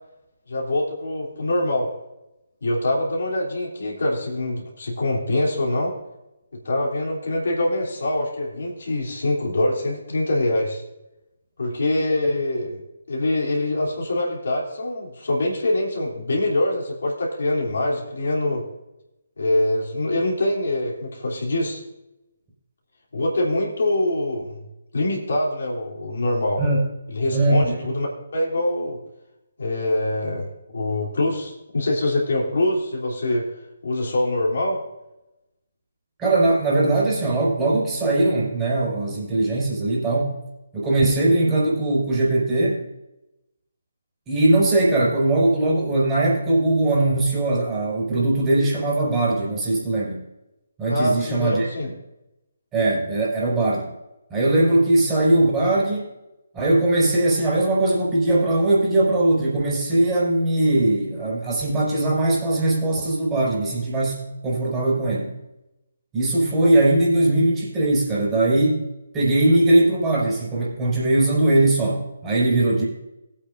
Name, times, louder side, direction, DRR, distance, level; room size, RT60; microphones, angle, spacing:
voice 1, 0.5-1.9 2.6-5.9 6.6-10.8 11.6-12.8 13.1-18.6 19.4-21.8 23.1-24.6 24.9-26.6 27.1-29.0 29.6-33.5 33.8-34.8 50.9-51.9, left 1 dB, 60° left, -2 dB, 3.2 m, -24 dB
voice 2, 27.3-27.7 36.2-40.4 40.7-42.8 44.3-50.2 50.8-51.7 52.7-53.9 54.3-56.1 56.5-65.3 66.1-68.8 69.1-72.8, right 2 dB, 15° right, -6 dB, 4.8 m, -20 dB
20.0 x 8.6 x 2.6 m, 0.92 s
figure-of-eight pair, 140°, 0 cm